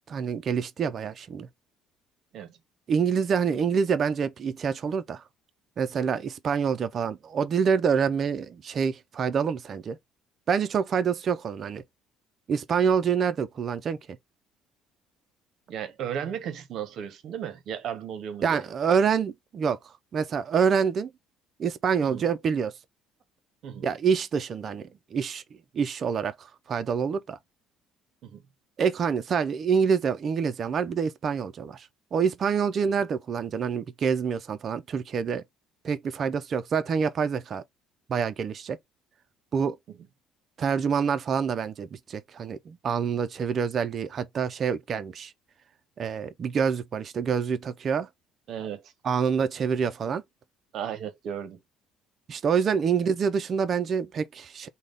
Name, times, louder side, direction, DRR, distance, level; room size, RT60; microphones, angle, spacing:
voice 1, 0.1-1.5 2.9-5.2 5.8-10.0 10.5-11.8 12.5-14.0 18.4-19.8 20.1-21.1 21.6-22.7 23.8-25.4 25.7-27.4 28.8-35.4 35.8-37.6 38.1-38.8 39.5-39.8 40.6-45.3 46.0-48.1 49.0-50.2 52.3-54.7, right 6 dB, 35° right, 0.3 m, -26 dB
voice 2, 15.7-18.6 22.0-22.3 23.6-23.9 28.2-28.4 39.9-40.0 48.5-48.9 50.7-51.6, right 8 dB, 55° right, 0.7 m, -35 dB
3.4 x 2.0 x 3.7 m
cardioid pair, 150°, 0 cm